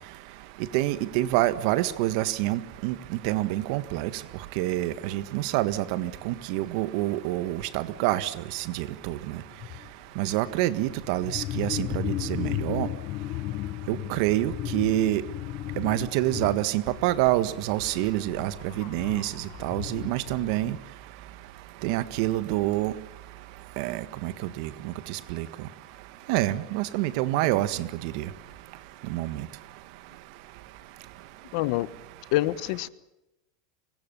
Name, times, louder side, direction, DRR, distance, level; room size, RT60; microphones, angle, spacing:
voice 1, 0.7-2.9 3.2-4.1 4.6-9.4 10.2-12.9 13.9-15.2 15.8-20.8 21.8-22.9 23.8-25.5 26.3-28.3 29.1-29.5, right 16 dB, 55° right, 14 dB, 1.6 m, -27 dB
sound 1, 9.1-9.2 9.5-9.9 10.9-20.8, left 16 dB, 40° left, 1.0 m, -35 dB
voice 2, 31.5-31.9 32.3-32.9, left 17 dB, 55° left, 16 dB, 1.3 m, -25 dB
25.5 x 22.0 x 7.0 m, 0.91 s
supercardioid pair, 155°, 4 cm